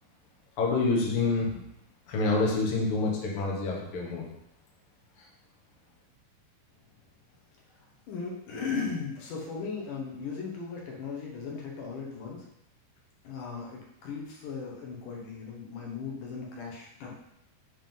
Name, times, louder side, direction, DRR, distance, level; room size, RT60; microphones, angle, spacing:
voice 1, 0.6-1.6 2.1-4.2 5.2-5.3, left 3 dB, 85° left, -2 dB, 1.2 m, -27 dB
voice 2, 8.1-12.5 13.2-17.1, left 5 dB, 65° left, -2 dB, 2.4 m, -37 dB
7.7 x 3.7 x 5.4 m, 0.78 s
omnidirectional pair, 4.8 m